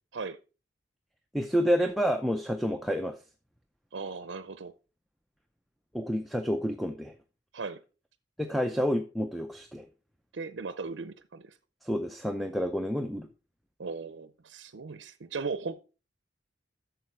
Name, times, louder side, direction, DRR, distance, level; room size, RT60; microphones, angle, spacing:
voice 1, 1.3-3.2 5.9-7.1 8.4-9.8 11.8-13.3, equal, ahead, 0.6 m, -29 dB
voice 2, 3.9-4.7 7.5-7.8 10.3-11.5 13.8-15.8, right 4 dB, 75° right, 0.6 m, -37 dB
8.8 x 6.7 x 4.5 m
head